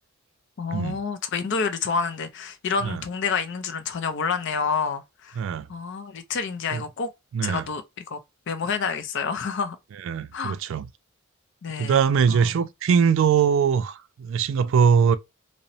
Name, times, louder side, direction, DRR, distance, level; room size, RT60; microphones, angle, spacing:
voice 1, 0.6-5.4 5.7-7.1 7.4-8.2 8.5-9.8 10.3-10.6 11.6-12.5, left 5 dB, 55° left, 0.4 m, -28 dB
voice 2, 5.4-5.7 6.7-6.8 7.3-7.6 10.1-10.9 11.8-15.2, right 7 dB, 60° right, 0.3 m, -21 dB
2.8 x 2.0 x 2.6 m
head